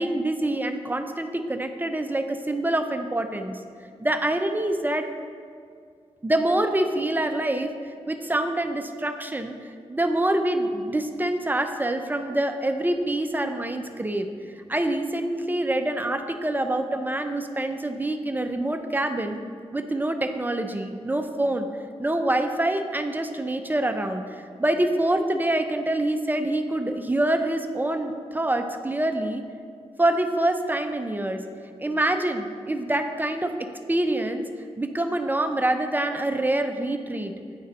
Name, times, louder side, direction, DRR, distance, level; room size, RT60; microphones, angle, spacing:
voice 1, 0.0-3.6 4.0-5.1 6.2-7.7 8.1-14.3 14.7-19.4 19.7-21.7 22.0-29.4 30.0-31.4 31.8-34.4 34.8-37.3, right 1 dB, 15° right, 6 dB, 0.4 m, -26 dB
9.4 x 3.9 x 4.0 m, 2.2 s
cardioid pair, 80°, 11 cm